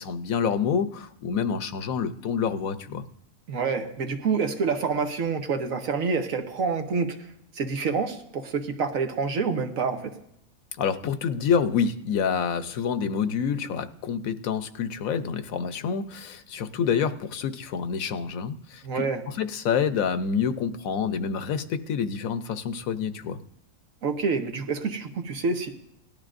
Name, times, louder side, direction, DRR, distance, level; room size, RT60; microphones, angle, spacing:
voice 1, 0.0-3.0 10.8-19.1 19.4-23.4, left 6 dB, 75° left, 11 dB, 1.1 m, -27 dB
voice 2, 3.5-7.3 7.5-10.2 18.8-19.2 24.0-25.7, right 5 dB, 75° right, 5 dB, 1.4 m, -27 dB
18.5 x 12.5 x 2.5 m, 0.75 s
omnidirectional pair, 1.5 m